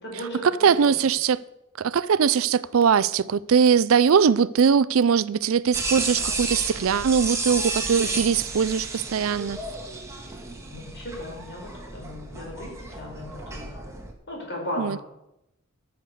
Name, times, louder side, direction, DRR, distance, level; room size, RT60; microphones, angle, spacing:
voice 1, 0.0-0.5 0.8-1.0 10.7-13.8 14.3-15.0, left 1 dB, 55° left, 4.8 m, -36 dB
voice 2, 0.6-1.4 1.8-9.6 14.8-15.0, right 6 dB, 70° right, 0.4 m, -21 dB
sound 1, 5.7-14.1, right 3 dB, 15° right, 1.8 m, -32 dB
13.0 x 6.7 x 6.9 m
head